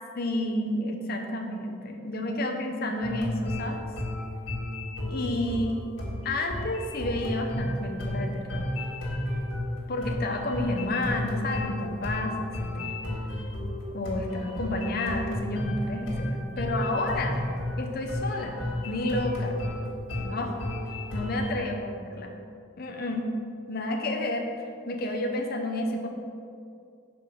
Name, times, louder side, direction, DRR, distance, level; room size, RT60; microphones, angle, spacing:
voice 1, 0.2-3.8 5.1-5.8 6.2-8.7 9.9-12.9 13.9-17.5 17.8-19.6 20.2-20.6 21.1-22.3 22.8-23.3 23.7-24.5 24.9-26.1, left 1 dB, 50° left, 2 dB, 0.7 m, -30 dB
sound 1, 3.0-21.6, left 1 dB, 65° left, 1.7 m, -32 dB
5.2 x 5.0 x 6.0 m, 2.4 s
head